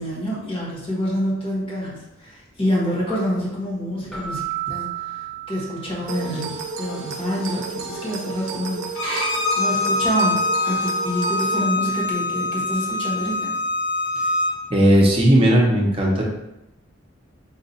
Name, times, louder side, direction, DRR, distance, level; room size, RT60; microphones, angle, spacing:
voice 1, 0.0-8.9 9.6-13.5, equal, 30° left, -5 dB, 1.2 m, -27 dB
Keyboard (musical), 4.1-6.5, right 12 dB, 5° left, 1.1 m, -32 dB
sound 1, 6.1-11.6, right 5 dB, 80° right, 0.5 m, -32 dB
Bowed string instrument, 9.0-14.5, left 1 dB, 70° left, 0.9 m, -24 dB
voice 2, 14.7-16.2, equal, 30° right, -2 dB, 0.8 m, -16 dB
4.1 x 2.5 x 4.0 m, 0.92 s
head